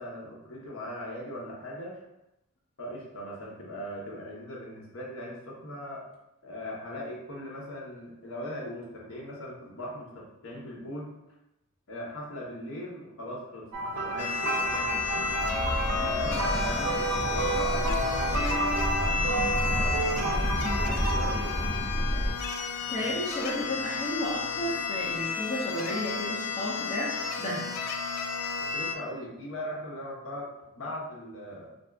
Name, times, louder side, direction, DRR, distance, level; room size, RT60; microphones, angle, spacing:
voice 1, 0.0-2.0 2.8-6.0 6.4-11.1 11.9-13.7 14.0-15.1 16.0-17.0 17.2-20.4 20.7-21.6 28.6-30.5 30.8-31.7, left 1 dB, 60° left, -4 dB, 0.9 m, -39 dB
sound 1, 13.7-22.0 22.9-23.1 24.9-25.0, right 2 dB, 75° right, 0.5 m, -31 dB
sound 2, 14.2-28.9, left 5 dB, 90° left, 0.3 m, -33 dB
sound 3, 14.6-22.3, equal, 5° right, 0.9 m, -31 dB
voice 2, 16.1-16.4 22.7-27.7, left 1 dB, 30° left, -6 dB, 0.5 m, -33 dB
2.6 x 2.3 x 3.4 m, 0.88 s
head